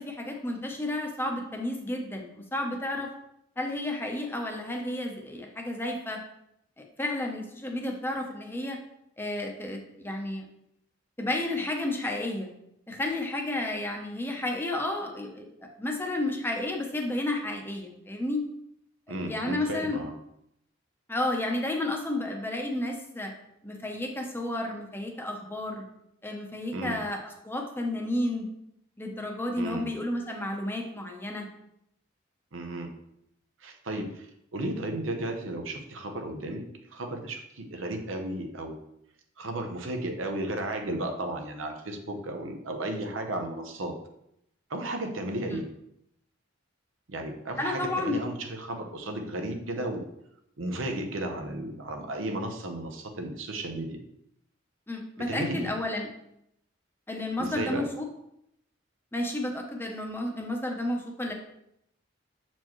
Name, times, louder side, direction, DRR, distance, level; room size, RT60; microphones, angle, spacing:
voice 1, 0.0-3.1 3.6-6.2 6.8-8.8 9.2-10.4 11.2-12.5 12.9-15.5 15.8-18.4 19.1-20.0 21.1-23.3 23.6-25.8 26.2-28.5 29.0-31.5 45.4-45.6 47.6-48.2 54.9-56.1 57.1-58.0 59.1-61.3, left 1 dB, 10° left, 2 dB, 0.7 m, -32 dB
voice 2, 19.1-20.1 26.7-27.0 29.6-29.9 32.5-32.9 33.6-34.3 34.5-36.6 36.9-38.8 39.4-43.9 44.7-45.6 47.1-50.0 50.6-54.0 55.3-55.7 57.4-57.8, right 1 dB, 85° right, 4 dB, 0.9 m, -34 dB
7.3 x 4.4 x 3.0 m, 0.78 s
head